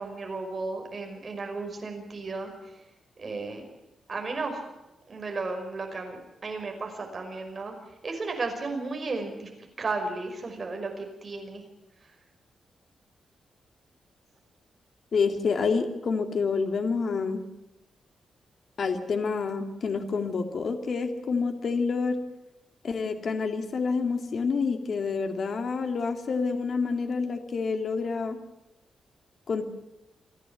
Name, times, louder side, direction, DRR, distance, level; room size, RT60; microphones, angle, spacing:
voice 1, 0.0-2.5 3.2-3.7 4.1-4.6 5.1-7.8 8.0-9.5 9.8-11.6, right 3 dB, 30° right, 3 dB, 5.5 m, -34 dB
voice 2, 15.1-17.5 18.8-22.2 22.8-28.4 29.5-29.7, left 4 dB, 50° left, 6 dB, 2.3 m, -28 dB
29.0 x 11.0 x 9.6 m, 0.96 s
wide cardioid pair, 145°, 0 cm